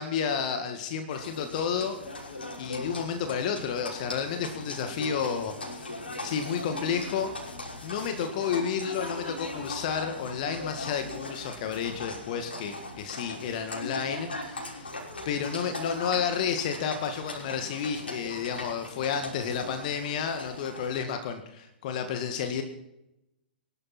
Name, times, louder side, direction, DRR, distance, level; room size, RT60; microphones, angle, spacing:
voice 1, 0.0-1.9 2.6-5.9 6.2-7.3 7.8-15.0 15.3-22.6, left 7 dB, 45° left, 7 dB, 1.9 m, -31 dB
Livestock farm animals working animals, 1.1-21.0, left 2 dB, 75° left, 5.7 m, -39 dB
23.5 x 12.0 x 4.4 m, 0.86 s
figure-of-eight pair, 110°, 6 cm